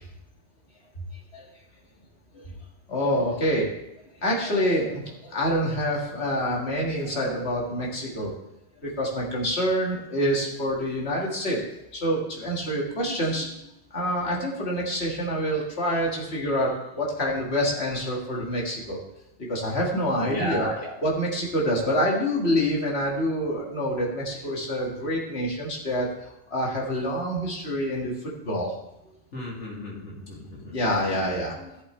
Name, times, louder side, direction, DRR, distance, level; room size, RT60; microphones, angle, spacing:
voice 1, 2.9-3.7 4.2-8.3 8.8-11.6 11.9-13.5 13.9-19.0 19.5-20.7 21.0-28.7 30.7-31.8, equal, 65° left, -3 dB, 2.3 m, -27 dB
voice 2, 20.2-20.9 29.3-30.8, left 1 dB, 90° left, -4 dB, 2.9 m, -34 dB
14.5 x 7.7 x 3.3 m, 0.87 s
omnidirectional pair, 1.2 m